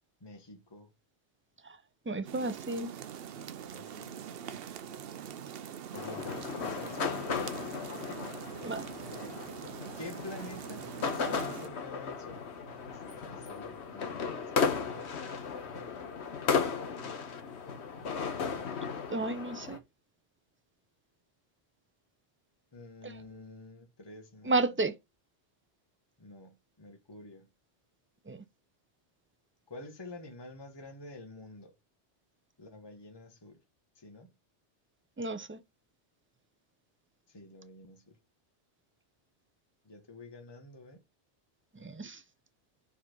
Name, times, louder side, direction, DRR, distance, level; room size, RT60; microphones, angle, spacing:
voice 1, 0.2-0.9 3.7-4.6 5.9-8.1 10.0-12.4 12.9-14.7 22.7-24.7 26.2-27.5 29.7-31.7 32.6-33.6 33.9-34.3 37.3-38.2 39.8-41.0, left 2 dB, 20° left, 1.2 m, -48 dB
voice 2, 2.1-2.9 8.6-8.8 19.1-19.8 23.0-23.1 24.5-24.9 28.3-28.4 35.2-35.6 41.7-42.2, right 2 dB, 20° right, 0.3 m, -32 dB
sound 1, 2.3-11.7, right 8 dB, 60° right, 0.8 m, -43 dB
sound 2, 5.9-19.8, left 5 dB, 70° left, 1.3 m, -35 dB
5.0 x 4.2 x 5.9 m
omnidirectional pair, 1.2 m